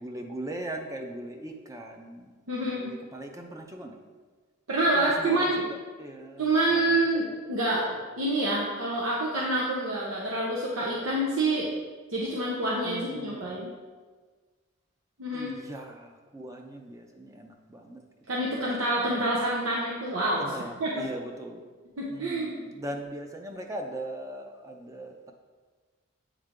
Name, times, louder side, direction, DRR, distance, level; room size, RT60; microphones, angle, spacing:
voice 1, 0.0-4.0 4.9-7.0 12.8-13.7 15.3-18.0 20.4-21.7 22.1-25.3, right 1 dB, 15° right, 3 dB, 0.5 m, -40 dB
voice 2, 2.5-2.9 4.7-5.6 6.4-11.7 12.1-13.7 15.2-15.5 18.3-20.5 20.8-20.9 22.0-22.5, right 1 dB, 90° right, -4 dB, 0.8 m, -27 dB
8.1 x 3.3 x 3.7 m, 1.4 s
head